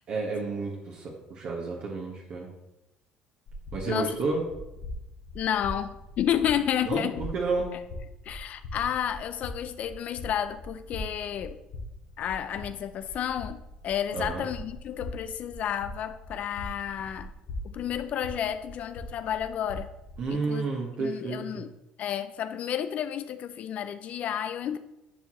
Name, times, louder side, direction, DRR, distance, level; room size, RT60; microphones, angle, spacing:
voice 1, 0.1-2.5 3.7-4.4 6.8-7.7 14.1-14.4 20.2-21.6, right 4 dB, 60° right, 1.2 m, -31 dB
sound 1, 3.5-20.3, left 1 dB, 75° left, 1.8 m, -42 dB
voice 2, 3.9-4.2 5.3-7.2 7.7-7.8 8.3-11.6 12.2-17.3 17.6-19.9 20.3-20.7 21.0-21.7 22.0-24.8, left 9 dB, 60° left, 0.4 m, -31 dB
10.0 x 4.5 x 3.0 m
supercardioid pair, 90°, 3 cm